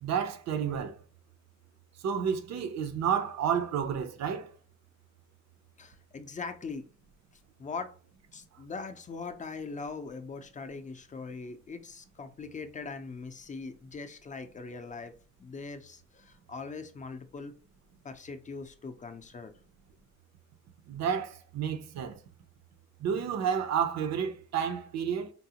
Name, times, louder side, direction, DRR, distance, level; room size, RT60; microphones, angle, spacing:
voice 1, 0.0-1.0 2.0-4.5 20.9-22.2 23.0-25.3, right 7 dB, 60° right, 0.6 m, -30 dB
voice 2, 5.8-6.9 7.6-7.9 8.3-15.1 15.4-17.5 18.0-19.5, left 4 dB, 25° left, 0.5 m, -41 dB
3.7 x 2.0 x 2.8 m
cardioid pair, 90°, 30 cm